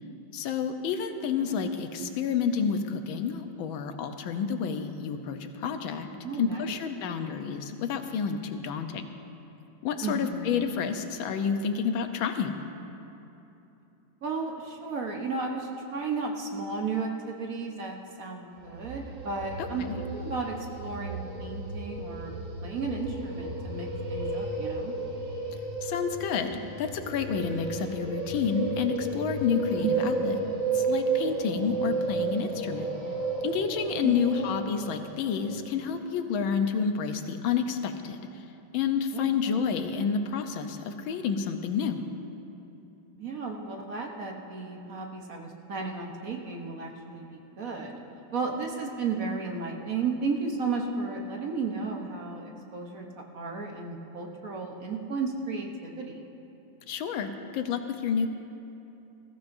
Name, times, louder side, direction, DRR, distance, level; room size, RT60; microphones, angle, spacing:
voice 1, 0.3-6.1 6.4-9.1 9.8-12.6 19.6-19.9 25.8-30.3 30.7-32.9 33.4-38.4 38.7-42.0 56.9-58.3, left 6 dB, 90° left, 7 dB, 1.6 m, -29 dB
voice 2, 6.2-6.7 10.0-10.6 14.2-22.3 22.6-24.9 29.8-30.2 34.0-34.4 39.1-39.6 43.2-48.0 48.3-53.0 53.3-56.2, right 4 dB, 50° right, 1 dB, 1.3 m, -34 dB
sound 1, 18.6-35.6, right 3 dB, 90° right, 2.9 m, -33 dB
20.5 x 14.5 x 2.6 m, 2.9 s
omnidirectional pair, 2.1 m